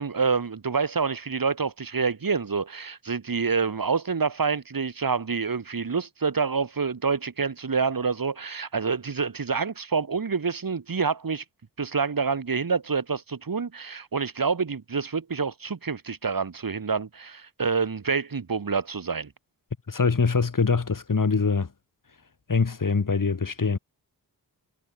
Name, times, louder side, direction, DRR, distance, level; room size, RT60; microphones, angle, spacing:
voice 1, 0.0-11.4 11.8-19.3, right 5 dB, 60° right, 5.4 m, -27 dB
voice 2, 19.9-21.7 22.5-23.8, left 4 dB, 55° left, 6.5 m, -23 dB
cardioid pair, 55°, 39 cm